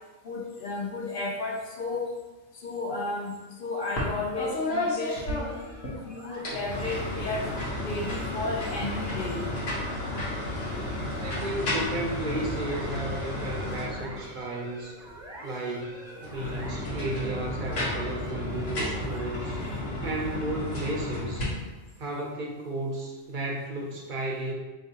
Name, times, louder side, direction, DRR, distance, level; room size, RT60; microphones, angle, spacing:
voice 1, 0.2-2.1 2.5-5.6 6.1-7.5 7.8-9.5, left 3 dB, 55° left, 0 dB, 0.7 m, -33 dB
sound 1, 4.0-4.1 4.4-5.9 6.3-14.4 16.1-21.4, left 1 dB, 85° left, 1.4 m, -32 dB
sound 2, 5.0-20.2, right 1 dB, 5° right, 0.5 m, -47 dB
voice 2, 11.1-15.0 15.4-19.6 20.0-21.5 22.0-24.5, right 2 dB, 50° right, -1 dB, 0.7 m, -34 dB
4.5 x 3.2 x 2.8 m, 1.2 s
omnidirectional pair, 1.3 m